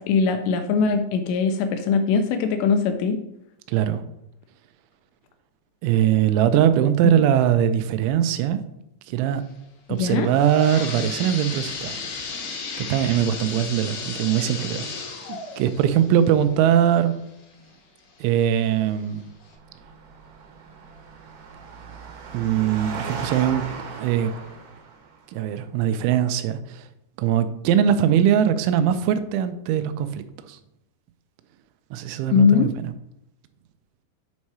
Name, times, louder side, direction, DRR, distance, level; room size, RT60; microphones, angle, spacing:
voice 1, 0.0-3.2 7.0-7.2 9.9-10.3 32.3-32.7, left 5 dB, 85° left, 7 dB, 2.5 m, -21 dB
voice 2, 3.7-4.0 5.8-8.6 9.1-9.4 9.9-12.0 12.8-14.9 15.3-17.1 18.2-19.2 22.3-23.6 23.9-24.3 25.3-26.8 27.2-30.6 31.9-32.9, right 10 dB, 85° right, 11 dB, 2.9 m, -21 dB
sound 1, 10.1-17.7 18.2-18.3 19.0-19.1 19.5-19.6, left 4 dB, 65° left, 2.3 m, -34 dB
Engine, 19.5-25.2, right 4 dB, 70° right, 2.6 m, -37 dB
7.4 x 4.2 x 4.7 m, 0.82 s
omnidirectional pair, 5.4 m